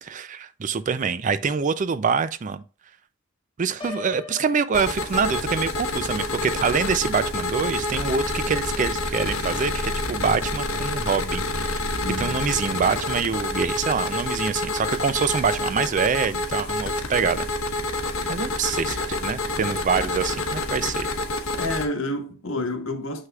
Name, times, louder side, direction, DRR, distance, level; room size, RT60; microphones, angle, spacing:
voice 1, 0.0-2.6 3.6-11.8 12.2-17.5 18.3-21.1, right 5 dB, 35° right, 0.4 m, -25 dB
Piano, 3.8-5.7, left 4 dB, 25° left, 0.8 m, -40 dB
sound 1, 4.7-21.8, left 2 dB, 85° left, 1.1 m, -28 dB
voice 2, 12.0-12.4 18.2-18.4 21.5-23.3, left 1 dB, 70° left, 1.4 m, -29 dB
7.4 x 6.4 x 2.4 m
head